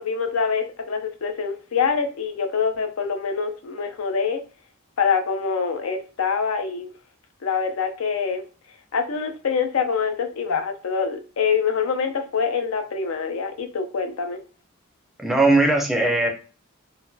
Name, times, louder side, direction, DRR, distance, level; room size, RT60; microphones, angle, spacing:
voice 1, 0.0-4.4 5.0-6.9 7.4-8.4 8.9-14.4, left 5 dB, 80° left, 7 dB, 0.5 m, -25 dB
voice 2, 15.2-16.3, right 2 dB, ahead, 1 dB, 0.4 m, -19 dB
3.9 x 2.2 x 2.6 m, 0.35 s
head